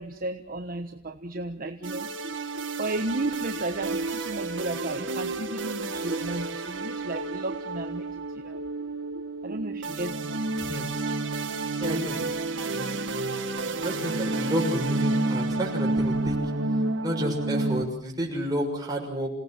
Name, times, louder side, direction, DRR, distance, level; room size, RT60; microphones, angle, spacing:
voice 1, 0.0-8.6 9.1-10.4, right 2 dB, 50° right, 5 dB, 1.2 m, -34 dB
sound 1, 1.8-17.8, right 2 dB, 70° right, 1.7 m, -30 dB
voice 2, 11.8-12.3 12.7-12.9 13.7-16.4 17.0-19.3, equal, 20° right, 0 dB, 6.6 m, -30 dB
28.0 x 18.0 x 7.6 m, 0.66 s
head